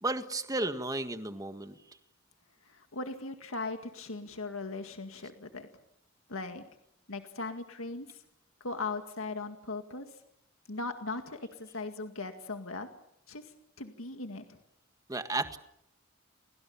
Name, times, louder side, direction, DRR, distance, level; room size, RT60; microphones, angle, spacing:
voice 1, 0.0-1.7 15.1-15.6, right 2 dB, 15° right, 9 dB, 1.6 m, -33 dB
voice 2, 2.7-5.7 6.3-6.6 7.1-8.2 8.6-10.1 10.7-12.9 13.3-14.6, left 3 dB, 80° left, 6 dB, 2.0 m, -39 dB
30.0 x 22.0 x 7.2 m, 0.77 s
head